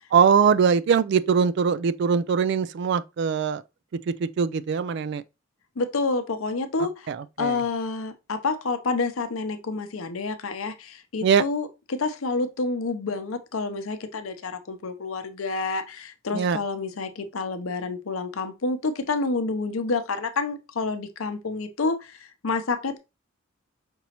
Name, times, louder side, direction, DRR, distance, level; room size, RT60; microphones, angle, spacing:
voice 1, 0.1-3.6 4.2-5.2 7.1-7.6 11.2-11.4 16.3-16.6, right 6 dB, 55° right, 0.3 m, -22 dB
voice 2, 5.8-7.1 7.4-23.0, left 3 dB, 90° left, 0.7 m, -28 dB
5.3 x 2.9 x 2.9 m
head